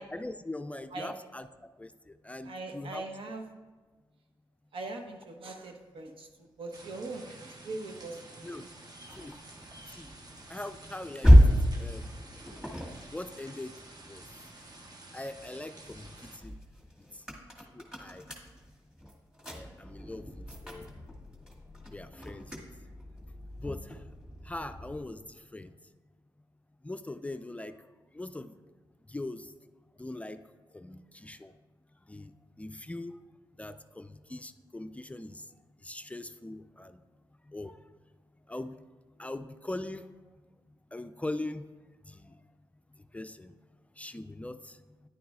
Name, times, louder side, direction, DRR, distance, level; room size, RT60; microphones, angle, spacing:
voice 1, 0.1-1.5 1.8-1.9 2.2-3.0 8.4-8.6 9.2-9.3 9.9-10.1 10.5-11.3 11.8-12.1 13.1-13.7 14.1-14.2 15.1-16.1 16.4-16.6 17.8-18.2 19.5-20.2 20.6-20.9 21.9-22.5 23.6-23.8 24.5-25.2 25.5-25.7 26.8-27.7 28.1-28.5 29.1-29.4 30.0-30.4 30.7-31.5 32.1-32.2 32.6-33.2 33.6-35.3 35.8-37.0 37.5-37.8 38.5-38.8 39.2-40.0 40.9-41.6 43.1-43.5 44.0-44.6, left 2 dB, 15° left, 10 dB, 0.4 m, -40 dB
voice 2, 2.4-3.5 4.7-8.7, right 3 dB, 75° right, 4 dB, 0.9 m, -41 dB
sound 1, 6.7-16.4, right 2 dB, 45° right, 1.1 m, -50 dB
sound 2, 8.4-14.9 15.3-25.1, equal, 5° right, 1.9 m, -29 dB
9.9 x 9.3 x 2.4 m, 1.3 s
cardioid pair, 55°, 9 cm